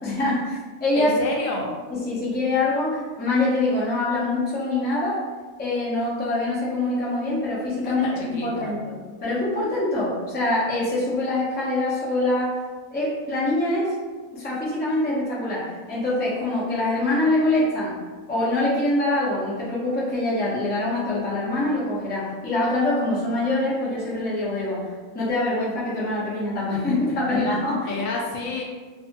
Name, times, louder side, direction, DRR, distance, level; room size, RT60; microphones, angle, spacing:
voice 1, 0.0-1.2 1.9-5.2 5.6-12.6 12.9-13.9 14.3-17.9 18.3-24.9 25.1-27.9, left 2 dB, 15° left, -8 dB, 0.3 m, -24 dB
voice 2, 0.9-1.6 7.8-8.7 27.8-28.6, left 3 dB, 80° left, -1 dB, 1.0 m, -29 dB
2.7 x 2.2 x 2.8 m, 1.4 s
omnidirectional pair, 1.4 m